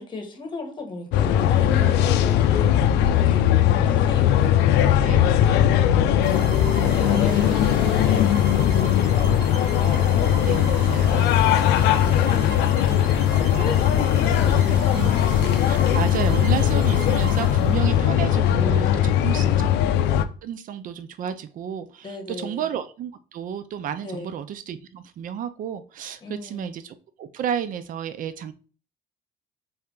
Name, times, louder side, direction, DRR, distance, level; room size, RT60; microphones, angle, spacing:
voice 1, 0.0-4.8 5.5-10.1 11.0-15.3 19.3-19.7 22.0-22.7 24.0-24.3 26.2-26.7, left 3 dB, 30° left, 1.3 m, -36 dB
sound 1, 1.1-20.2, left 10 dB, 90° left, 0.4 m, -19 dB
voice 2, 3.3-3.8 5.0-5.8 8.6-8.8 10.4-11.3 11.8-12.2 14.9-15.1 15.6-19.7 20.4-28.5, right 9 dB, 55° right, 0.5 m, -32 dB
sound 2, 6.2-18.1, right 4 dB, 85° right, 0.8 m, -39 dB
4.2 x 3.3 x 3.7 m
cardioid pair, 110°, 17 cm